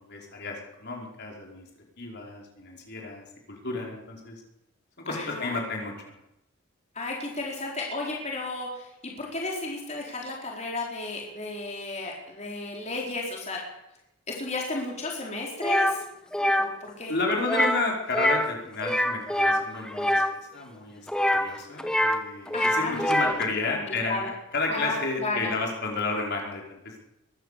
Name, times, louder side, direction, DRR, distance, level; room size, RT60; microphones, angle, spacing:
voice 1, 0.0-1.7 2.0-4.3 5.0-6.1 17.1-20.2 20.5-21.0 21.3-27.0, left 3 dB, 50° left, 0 dB, 5.1 m, -32 dB
voice 2, 5.1-5.6 6.9-13.6 14.4-16.0 16.6-17.1 22.5-23.4 23.7-24.3 24.7-25.5, left 2 dB, 30° left, -2 dB, 4.6 m, -33 dB
sound 1, 15.6-15.9 16.3-16.7 17.4-17.8 18.1-18.5 18.8-20.3 21.1-22.2 22.5-23.4, equal, 5° left, 1.3 m, -24 dB
22.5 x 14.5 x 8.4 m, 0.85 s
head